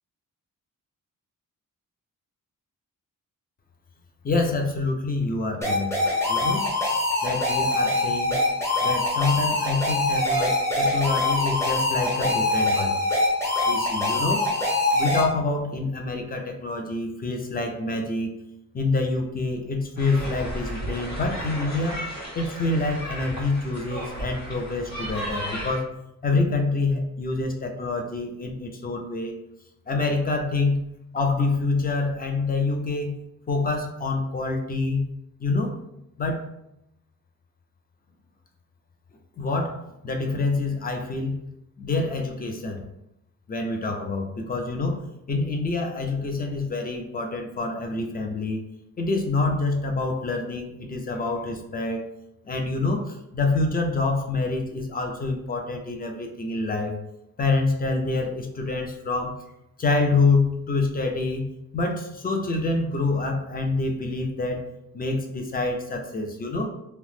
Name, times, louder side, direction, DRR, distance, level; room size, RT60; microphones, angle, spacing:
voice 1, 4.2-5.9 6.3-6.7 7.2-8.4 8.8-13.0 13.7-14.5 14.9-18.3 18.7-22.0 22.3-25.9 26.2-29.3 29.9-33.2 33.5-35.1 35.4-35.8 36.2-36.4 39.4-41.4 41.8-42.8 43.5-45.0 45.3-48.6 49.0-52.0 52.4-56.9 57.4-59.4 59.8-64.6 64.9-66.7, left 3 dB, 30° left, 3 dB, 0.4 m, -26 dB
sound 1, 5.6-15.2, left 2 dB, 10° left, 0.7 m, -24 dB
sound 2, 20.0-25.8, right 1 dB, 55° left, 1.5 m, -34 dB
2.8 x 2.0 x 3.2 m, 0.84 s
wide cardioid pair, 125°, 33 cm